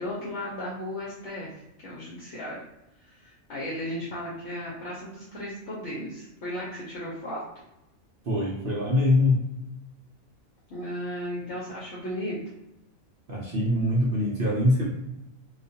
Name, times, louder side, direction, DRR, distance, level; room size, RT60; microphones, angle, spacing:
voice 1, 0.0-1.5 1.8-2.6 3.0-7.4 10.7-12.4, equal, 60° left, -6 dB, 0.9 m, -35 dB
voice 2, 8.2-9.5 13.3-14.9, left 1 dB, 60° right, -4 dB, 0.6 m, -23 dB
2.4 x 2.3 x 2.6 m, 0.90 s
omnidirectional pair, 1.5 m